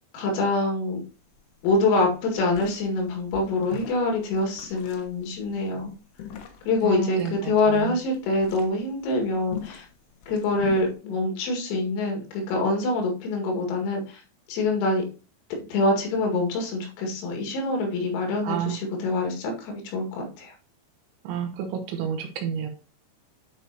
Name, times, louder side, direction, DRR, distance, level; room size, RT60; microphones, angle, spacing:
voice 1, 0.1-1.0 1.6-5.9 6.7-9.9 10.3-14.2 14.5-15.1 15.7-20.5, left 2 dB, 85° left, 2 dB, 4.7 m, -25 dB
sound 1, 0.9-1.0 1.2-1.4 1.6-10.9, left 8 dB, 70° left, 2.6 m, -43 dB
voice 2, 6.8-8.0 18.4-18.8 21.2-22.7, right 7 dB, 75° right, 4 dB, 3.1 m, -30 dB
9.9 x 5.4 x 2.9 m, 0.33 s
omnidirectional pair, 5.9 m